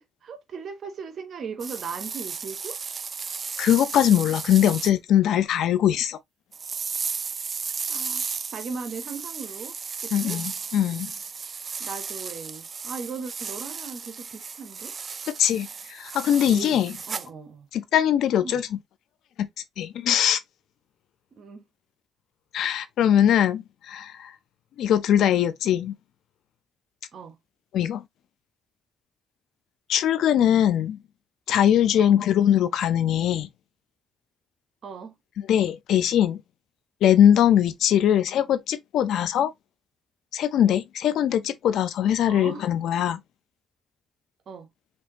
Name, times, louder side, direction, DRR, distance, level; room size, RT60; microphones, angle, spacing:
voice 1, 0.0-2.8 7.9-8.2 8.5-9.8 10.0-10.4 11.8-14.9 16.5-17.7 18.4-18.6 21.4-21.6 27.1-27.4 32.0-32.2 34.8-35.2 42.3-42.7 44.5-44.7, right 5 dB, 60° right, 1.2 m, -38 dB
sound 1, 1.6-4.9 6.5-17.3, right 5 dB, 45° right, 0.4 m, -34 dB
voice 2, 3.6-6.2 10.1-11.1 15.4-16.9 17.7-18.7 19.4-19.5 19.8-20.4 22.5-24.3 24.8-25.9 27.7-28.0 29.9-31.0 31.5-33.5 35.5-36.4 37.0-39.5 40.3-43.2, left 10 dB, 80° left, 0.7 m, -21 dB
5.3 x 2.7 x 3.0 m
cardioid pair, 90°, 0 cm